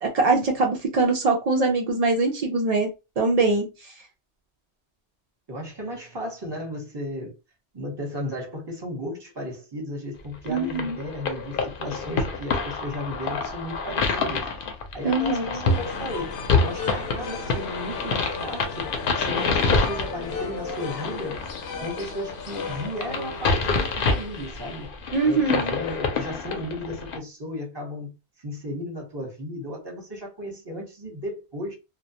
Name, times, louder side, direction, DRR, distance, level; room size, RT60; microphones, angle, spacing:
voice 1, 0.0-2.9 3.2-3.9 10.5-11.0 15.0-15.6 25.1-25.7, right 3 dB, 70° right, 0.3 m, -23 dB
voice 2, 5.5-7.3 7.7-14.5 14.9-18.9 19.1-21.5 21.8-24.9 25.2-28.1 28.4-31.7, equal, 25° right, 0.8 m, -34 dB
sound 1, 10.4-27.2, left 4 dB, 60° left, 0.6 m, -27 dB
sound 2, 15.7-24.8, left 5 dB, 85° left, 0.9 m, -36 dB
2.2 x 2.1 x 2.7 m
omnidirectional pair, 1.2 m